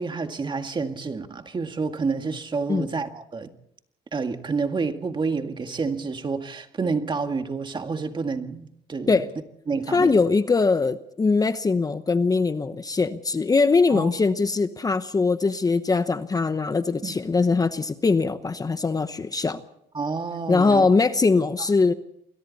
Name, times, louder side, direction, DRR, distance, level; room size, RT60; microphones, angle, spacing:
voice 1, 0.0-3.5 4.1-9.2 9.7-10.2 13.9-14.2 17.0-17.1 19.9-20.9, right 4 dB, 30° right, 2.0 m, -29 dB
voice 2, 9.9-19.6 20.5-21.9, left 4 dB, 20° left, 1.0 m, -21 dB
28.5 x 22.5 x 4.2 m
cardioid pair, 110°, 17 cm